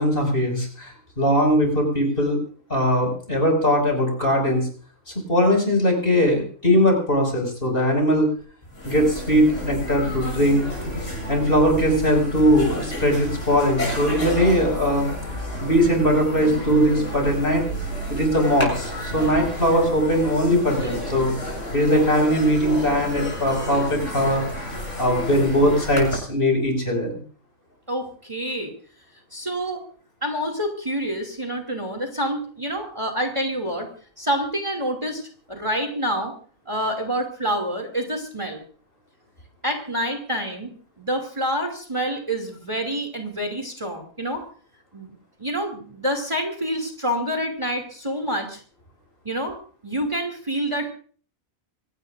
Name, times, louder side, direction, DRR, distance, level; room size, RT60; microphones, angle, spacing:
voice 1, 0.0-2.4 2.7-4.7 5.3-8.3 8.8-10.6 11.3-15.1 15.6-17.7 18.1-21.3 21.7-24.4 25.0-27.2, equal, 40° left, 2 dB, 6.3 m, -20 dB
sound 1, 8.4-8.5 8.7-26.2, equal, 65° left, 7.6 m, -31 dB
voice 2, 27.9-28.7 29.3-29.8 30.2-33.9 34.2-35.2 35.5-36.3 36.7-38.6 39.6-44.4 44.9-45.1 45.4-48.6 49.2-49.6 49.8-50.9, equal, 20° right, 3 dB, 2.7 m, -27 dB
25.0 x 17.5 x 2.6 m, 0.43 s
omnidirectional pair, 1.4 m